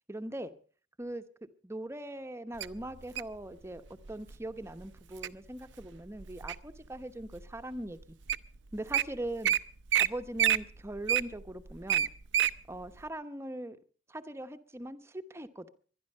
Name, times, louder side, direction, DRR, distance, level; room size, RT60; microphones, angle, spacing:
voice 1, 0.1-0.5 1.0-1.2 1.6-3.8 4.1-8.2 8.7-9.6 10.0-12.1 12.7-13.8 14.1-15.7, right 1 dB, 15° right, 10 dB, 0.9 m, -40 dB
Wild animals, 2.6-3.4 4.1-4.3 4.8-5.3 5.8-6.8 7.3-7.4 8.0-8.1 8.3-8.5 8.7-9.0 9.4-9.6 9.9-10.1 10.4-12.5 13.0-13.1, right 10 dB, 75° right, 0.6 m, -27 dB
22.5 x 11.0 x 5.5 m, 0.43 s
head